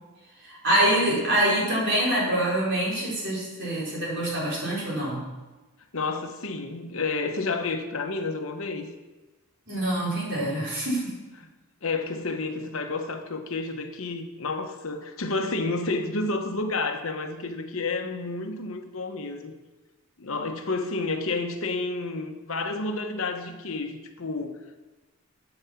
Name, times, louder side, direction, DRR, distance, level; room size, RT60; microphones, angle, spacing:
voice 1, 0.4-5.2 9.7-11.1, right 1 dB, 50° right, -6 dB, 4.6 m, -25 dB
voice 2, 5.9-8.9 11.4-11.5 11.8-19.5 20.2-24.8, left 3 dB, 65° left, 6 dB, 1.1 m, -30 dB
9.6 x 7.9 x 7.2 m, 1.2 s
head